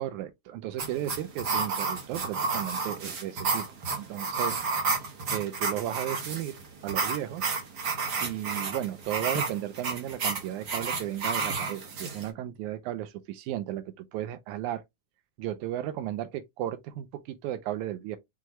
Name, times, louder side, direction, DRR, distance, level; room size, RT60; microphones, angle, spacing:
voice 1, 0.0-5.0 5.3-6.6 6.8-7.5 8.2-14.8 15.4-18.2, right 12 dB, 80° right, 1.9 m, -34 dB
sound 1, 0.8-12.3, right 4 dB, 65° right, 1.0 m, -31 dB
6.2 x 2.2 x 2.9 m
omnidirectional pair, 3.5 m